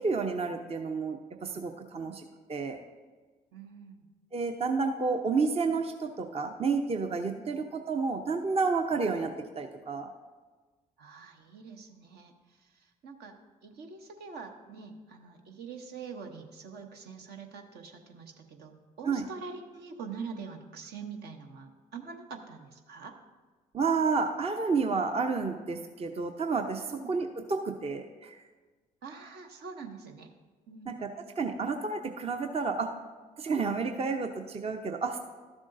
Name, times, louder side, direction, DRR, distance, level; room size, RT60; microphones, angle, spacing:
voice 1, 0.0-2.2 2.5-2.8 4.3-10.1 19.0-19.3 23.7-28.4 30.9-31.1 31.4-32.9 33.4-35.2, right 4 dB, 30° right, 5 dB, 0.7 m, -30 dB
voice 2, 3.5-4.1 7.4-7.5 11.0-12.3 12.6-13.3 13.6-23.2 26.9-27.1 29.0-30.3 30.7-30.9, right 5 dB, 60° right, 4 dB, 0.9 m, -44 dB
12.5 x 7.2 x 2.6 m, 1.4 s
hypercardioid pair, 50°, 19 cm